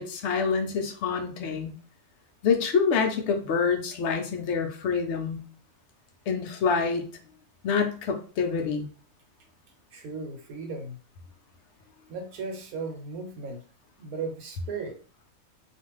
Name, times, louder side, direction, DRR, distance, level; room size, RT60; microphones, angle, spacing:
voice 1, 0.0-1.7 2.4-5.4 6.3-7.0 7.6-8.9, left 5 dB, 65° left, 5 dB, 0.7 m, -26 dB
voice 2, 9.9-11.0 12.1-13.6 14.0-15.0, right 4 dB, 90° right, 3 dB, 1.2 m, -36 dB
2.5 x 2.4 x 3.1 m, 0.39 s
omnidirectional pair, 1.5 m